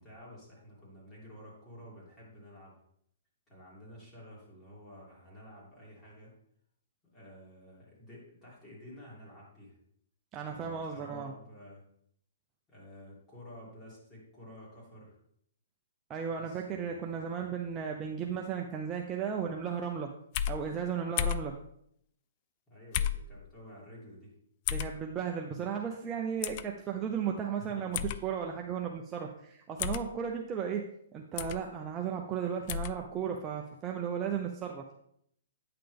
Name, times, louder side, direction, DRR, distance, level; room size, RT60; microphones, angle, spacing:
voice 1, 0.0-2.8 3.5-6.3 7.1-9.8 10.5-11.8 12.7-15.2 16.3-17.1 22.7-24.3 25.6-25.7 27.6-27.9, equal, 15° left, -6 dB, 2.9 m, -51 dB
voice 2, 10.3-11.3 16.1-20.1 20.5-21.6 24.7-30.9 31.1-34.9, right 7 dB, 20° right, 1 dB, 0.5 m, -35 dB
sound 1, 20.3-20.6 21.2-21.5 22.9-23.2 24.7-24.9 26.4-26.6 27.9-28.2 29.8-30.1 31.4-31.6 32.7-32.9, left 10 dB, 35° left, 0.3 m, -31 dB
8.8 x 5.8 x 3.4 m, 0.70 s
hypercardioid pair, 155°, 0 cm